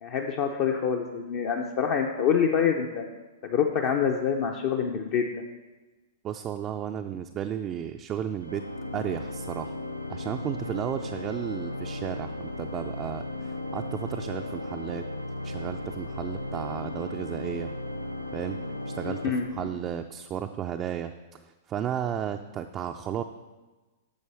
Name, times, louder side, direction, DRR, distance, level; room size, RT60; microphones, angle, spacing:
voice 1, 0.0-3.0 3.4-5.3 19.1-19.5, left 7 dB, 45° left, 2 dB, 0.6 m, -26 dB
voice 2, 6.2-8.6 8.9-9.8 10.1-15.0 15.4-17.7 18.3-18.6 18.9-21.4 21.7-23.2, right 9 dB, 30° right, 5 dB, 0.4 m, -33 dB
Organ, 8.4-20.2, left 1 dB, 90° left, 0.4 m, -36 dB
10.5 x 6.7 x 3.4 m, 1.2 s
figure-of-eight pair, 105°, 0 cm